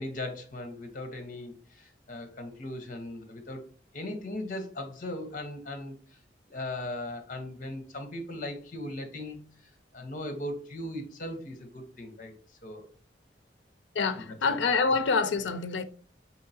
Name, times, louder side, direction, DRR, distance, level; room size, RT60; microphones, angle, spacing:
voice 1, 0.0-3.6 3.9-6.2 6.5-9.4 9.9-12.3 12.6-12.9 14.3-14.4, left 1 dB, 45° left, 1.0 m, -38 dB
voice 2, 13.9-15.8, left 4 dB, 75° left, 0.5 m, -26 dB
4.6 x 4.1 x 2.8 m
head